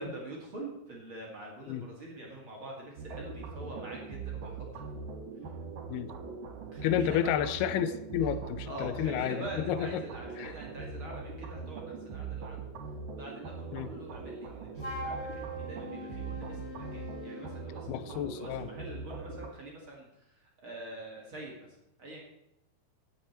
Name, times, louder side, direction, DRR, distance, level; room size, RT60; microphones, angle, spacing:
voice 1, 0.0-5.1 6.7-7.4 8.2-8.3 8.6-12.6 13.1-21.7 22.0-22.2, right 1 dB, 40° right, -2 dB, 2.3 m, -45 dB
sound 1, 3.0-19.5, right 4 dB, 60° right, 3.3 m, -41 dB
voice 2, 6.8-10.0 10.4-10.5 13.7-13.9 17.9-18.7, left 9 dB, 85° left, 12 dB, 2.7 m, -31 dB
Wind instrument woodwind instrument, 14.8-17.7, equal, 20° left, 2.9 m, -41 dB
16.5 x 7.2 x 4.3 m, 0.86 s
omnidirectional pair, 4.5 m